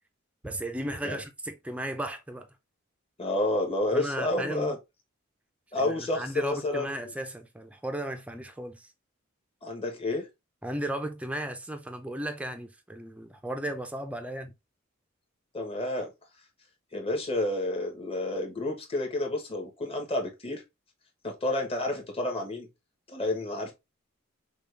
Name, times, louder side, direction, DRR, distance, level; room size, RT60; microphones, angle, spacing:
voice 1, 0.4-2.5 3.9-4.8 5.8-8.9 10.6-14.5, right 1 dB, 5° right, 0.5 m, -35 dB
voice 2, 3.2-4.8 5.7-7.1 9.6-10.3 15.5-16.1 16.9-20.6 21.2-22.7 23.1-23.7, left 1 dB, 25° left, 1.2 m, -30 dB
5.3 x 2.4 x 3.3 m
head